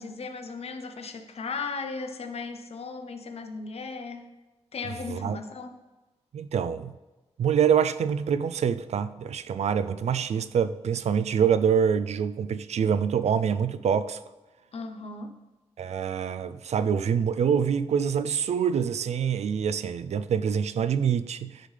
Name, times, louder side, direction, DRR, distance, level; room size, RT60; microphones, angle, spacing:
voice 1, 0.0-4.3 4.7-5.8 14.7-15.4, left 4 dB, 65° left, 0.8 m, -36 dB
voice 2, 6.3-6.9 7.4-14.2 15.8-21.6, right 7 dB, 80° right, 0.4 m, -25 dB
10.0 x 5.5 x 3.3 m
wide cardioid pair, 100°, 11 cm